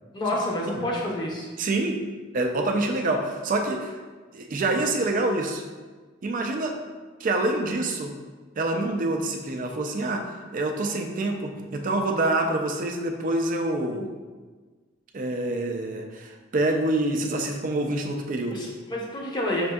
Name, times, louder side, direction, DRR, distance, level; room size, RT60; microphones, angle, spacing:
voice 1, 0.1-1.5 18.5-19.7, left 1 dB, 20° left, -3 dB, 0.6 m, -28 dB
voice 2, 1.6-2.0 2.3-4.0 4.3-5.6 6.2-6.8 7.2-8.1 8.6-14.1 15.1-18.6, right 2 dB, 40° right, 3 dB, 0.4 m, -26 dB
5.8 x 2.6 x 2.3 m, 1.4 s
head